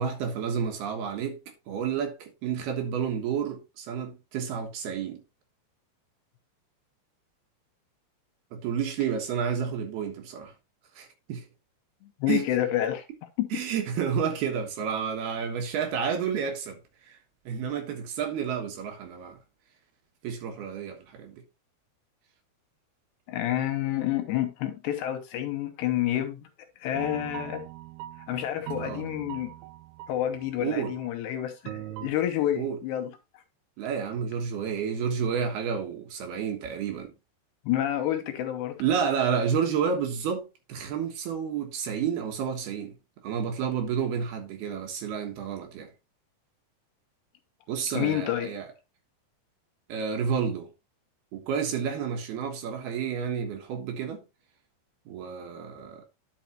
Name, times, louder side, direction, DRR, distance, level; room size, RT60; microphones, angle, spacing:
voice 1, 0.0-1.4 1.7-5.2 8.5-10.5 11.0-11.4 12.3-12.4 13.5-16.8 17.5-19.4 20.2-21.4 28.8-29.0 30.6-30.9 32.6-32.8 33.8-37.1 38.8-42.9 43.2-45.9 47.7-48.7 49.9-50.7 51.3-54.2 55.1-56.0, right 7 dB, 65° right, 3.0 m, -30 dB
voice 2, 12.0-13.0 13.4-13.5 23.3-26.5 26.8-27.6 28.3-29.5 30.1-33.1 37.6-38.8 47.9-48.5, left 12 dB, 75° left, 2.9 m, -29 dB
sound 1, 26.9-30.5 30.8-31.1 31.7-32.1, right 15 dB, 90° right, 3.0 m, -41 dB
10.5 x 6.2 x 2.9 m
omnidirectional pair, 5.3 m